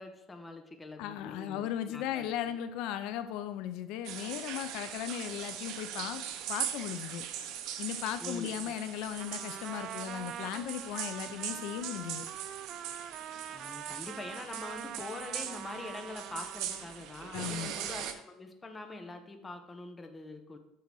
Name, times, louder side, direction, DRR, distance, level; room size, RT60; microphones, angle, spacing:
voice 1, 0.0-2.3 8.2-8.7 13.5-20.6, left 2 dB, 15° left, 6 dB, 0.9 m, -44 dB
voice 2, 1.0-6.2 6.5-7.3 7.8-12.3 17.3-17.8, left 11 dB, 70° left, 10 dB, 0.5 m, -37 dB
sound 1, 4.0-18.1, right 10 dB, 65° right, 0.8 m, -40 dB
Trumpet, 9.2-17.0, right 9 dB, 40° right, 0.4 m, -44 dB
8.4 x 3.9 x 6.2 m, 0.90 s
cardioid pair, 135°, 0 cm